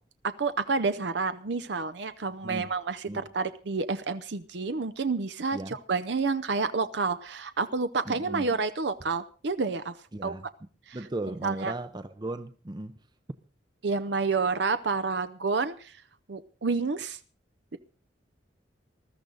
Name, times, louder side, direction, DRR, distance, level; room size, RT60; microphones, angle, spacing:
voice 1, 0.2-9.9 10.2-10.3 10.9-11.0 11.4-11.7 13.8-15.9 16.3-17.2 17.7-17.8, right 4 dB, 70° right, 0.7 m, -29 dB
voice 2, 8.1-8.5 10.1-10.5 10.9-13.0, right 1 dB, 25° right, 0.6 m, -36 dB
20.5 x 13.5 x 3.9 m
head